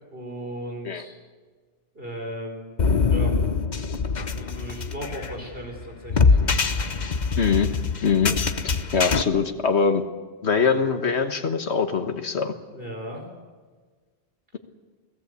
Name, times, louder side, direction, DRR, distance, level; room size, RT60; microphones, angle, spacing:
voice 1, 0.1-1.2 1.9-3.4 4.3-6.4 12.7-13.3, right 1 dB, 60° right, 3 dB, 5.4 m, -36 dB
sound 1, 2.8-9.2, left 4 dB, 45° left, 1.1 m, -23 dB
voice 2, 7.4-7.7 8.0-8.3 8.9-10.0 10.4-12.5, left 5 dB, 85° left, 7 dB, 1.7 m, -22 dB
29.0 x 18.5 x 8.3 m, 1.4 s
omnidirectional pair, 1.1 m